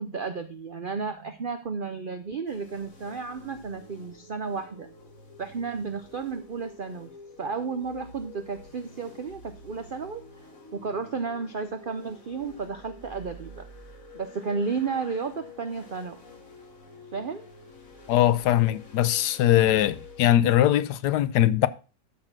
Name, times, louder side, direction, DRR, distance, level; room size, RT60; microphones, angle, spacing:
voice 1, 0.0-4.9 5.4-7.1 7.4-10.2 10.7-13.7 14.1-16.2 17.1-17.5, right 5 dB, 65° right, 0.5 m, -33 dB
sound 1, 2.5-20.3, left 3 dB, 50° left, 2.4 m, -48 dB
voice 2, 18.1-21.7, left 12 dB, 75° left, 1.2 m, -21 dB
13.0 x 4.4 x 5.8 m
omnidirectional pair, 1.8 m